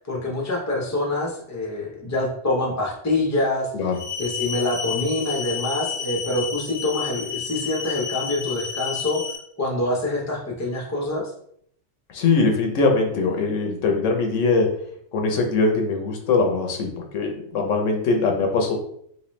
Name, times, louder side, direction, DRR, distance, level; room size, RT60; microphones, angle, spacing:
voice 1, 0.1-3.7 4.2-9.2 9.6-11.3, left 2 dB, 15° left, -2 dB, 0.6 m, -25 dB
sound 1, 3.9-9.4, left 7 dB, 60° left, 0.9 m, -31 dB
voice 2, 12.1-14.8 15.1-18.8, left 3 dB, 90° left, 2 dB, 1.0 m, -21 dB
3.0 x 3.0 x 3.1 m, 0.68 s
omnidirectional pair, 1.2 m